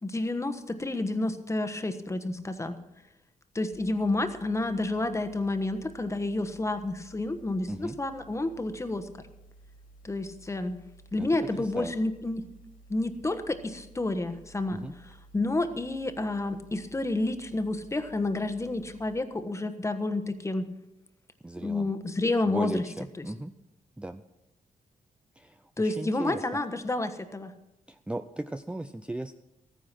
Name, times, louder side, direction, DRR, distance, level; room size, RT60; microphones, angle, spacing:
voice 1, 0.0-2.8 3.5-9.1 10.0-10.7 11.1-12.4 12.9-14.8 15.3-20.7 21.6-22.8 23.2-23.3 25.8-27.5, left 2 dB, 20° left, 9 dB, 1.2 m, -30 dB
sound 1, 3.7-19.2, right 2 dB, 80° left, 2.9 m, -54 dB
voice 2, 7.7-8.0 11.2-11.9 14.7-15.0 21.4-21.9 22.4-23.5 24.0-24.2 25.4-26.5 27.9-29.4, right 1 dB, 10° right, 9 dB, 0.5 m, -37 dB
14.0 x 9.9 x 6.0 m, 0.91 s
cardioid pair, 90°, 14 cm